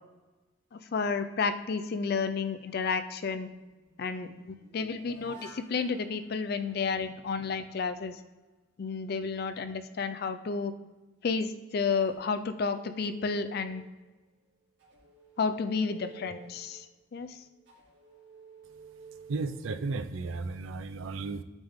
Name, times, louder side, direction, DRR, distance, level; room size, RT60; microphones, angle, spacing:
voice 1, 0.7-3.5 4.0-8.2 8.8-10.7 11.2-13.8 15.4-16.9 17.1-17.4, left 5 dB, 50° left, 10 dB, 0.4 m, -31 dB
sound 1, 3.5-7.4 12.0-14.3 14.8-20.4, right 5 dB, 60° right, 2.1 m, -53 dB
voice 2, 19.3-21.4, right 3 dB, 80° right, 11 dB, 0.4 m, -34 dB
9.0 x 3.6 x 3.5 m, 1.2 s
head